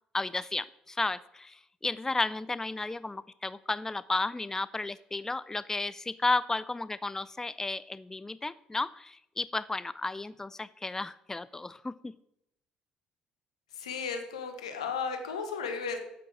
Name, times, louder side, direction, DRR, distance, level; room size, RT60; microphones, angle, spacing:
voice 1, 0.1-12.1, left 3 dB, 15° left, 18 dB, 0.4 m, -33 dB
voice 2, 13.7-16.0, left 5 dB, 85° left, 7 dB, 1.3 m, -34 dB
8.8 x 8.5 x 6.1 m, 0.81 s
figure-of-eight pair, 50°, 3 cm